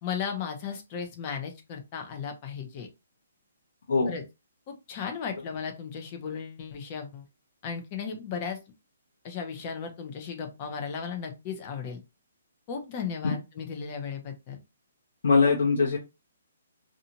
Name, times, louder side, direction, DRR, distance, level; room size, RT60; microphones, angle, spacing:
voice 1, 0.0-2.9 4.1-4.2 4.7-7.2 7.6-8.6 9.2-12.0 12.7-14.6, left 6 dB, 30° left, 5 dB, 0.7 m, -35 dB
voice 2, 15.2-16.0, left 4 dB, 70° left, -2 dB, 0.9 m, -22 dB
2.8 x 2.4 x 2.8 m, 0.25 s
hypercardioid pair, 165°, 0 cm